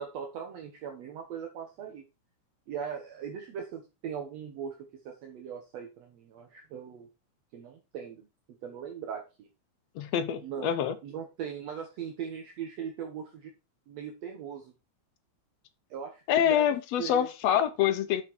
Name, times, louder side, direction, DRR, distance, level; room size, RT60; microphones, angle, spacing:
voice 1, 0.0-2.0 2.7-7.1 7.5-8.3 8.6-9.5 10.4-10.7 11.0-13.5 13.9-14.7 15.9-16.7 17.0-17.3, right 7 dB, 65° right, 2.2 m, -39 dB
voice 2, 10.0-11.0 16.3-18.2, left 10 dB, 70° left, 1.9 m, -26 dB
6.7 x 6.7 x 4.6 m
omnidirectional pair, 3.3 m